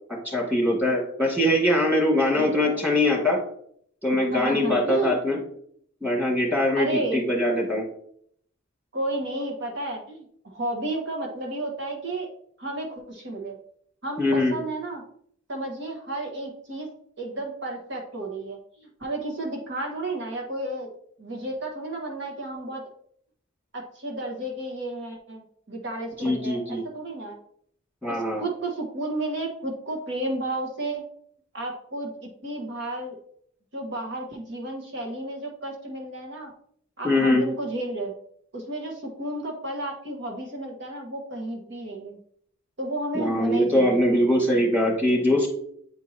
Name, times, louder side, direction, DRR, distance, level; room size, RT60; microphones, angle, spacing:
voice 1, 0.1-3.4 4.0-5.4 6.0-7.9 14.2-14.6 26.2-26.8 28.0-28.4 37.0-37.4 43.1-45.5, left 1 dB, 10° right, -2 dB, 2.0 m, -22 dB
voice 2, 2.4-2.8 4.3-5.2 6.5-7.2 8.9-12.3 12.6-13.6 14.0-15.0 15.5-16.9 17.2-20.9 21.2-22.8 23.7-27.4 28.1-31.0 31.5-33.2 33.7-36.5 37.0-38.1 38.5-42.2 42.8-44.0, right 2 dB, 60° right, 1 dB, 1.2 m, -32 dB
8.3 x 4.6 x 2.8 m, 0.65 s
head